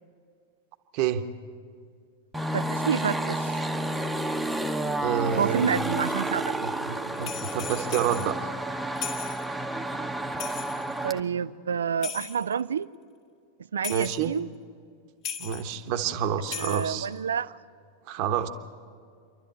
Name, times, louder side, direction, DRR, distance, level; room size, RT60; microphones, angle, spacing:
sound 1, 2.3-11.2, right 1 dB, 5° right, 1.0 m, -30 dB
voice 1, 2.5-3.6 5.4-6.6 11.0-12.9 13.7-14.5 16.5-17.6, right 7 dB, 65° right, 18 dB, 0.5 m, -28 dB
voice 2, 5.0-5.7 6.6-8.5 13.9-14.3 15.4-17.1 18.1-18.5, right 9 dB, 45° right, 8 dB, 1.1 m, -28 dB
sound 2, 7.2-8.3 9.0-9.5 10.4-11.0 12.0-12.6 13.8-14.3 15.2-15.7 16.4-17.1, left 7 dB, 40° left, 2.2 m, -37 dB
28.5 x 12.0 x 8.4 m, 2.2 s
figure-of-eight pair, 90°, 0 cm